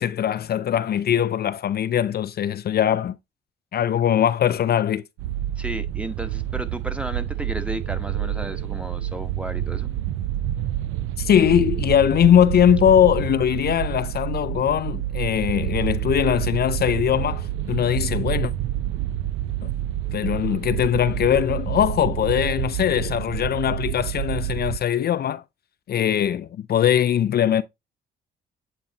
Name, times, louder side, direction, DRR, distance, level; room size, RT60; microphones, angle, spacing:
voice 1, 0.0-3.2 3.7-5.0 11.2-18.5 19.6-19.7 20.1-25.4 25.9-27.6, left 10 dB, 55° left, 0.5 m, -21 dB
sound 1, 5.2-24.8, right 13 dB, 90° right, 0.5 m, -28 dB
voice 2, 5.6-9.9, right 1 dB, 5° right, 1.1 m, -33 dB
8.8 x 3.8 x 2.9 m
cardioid pair, 90°, 20 cm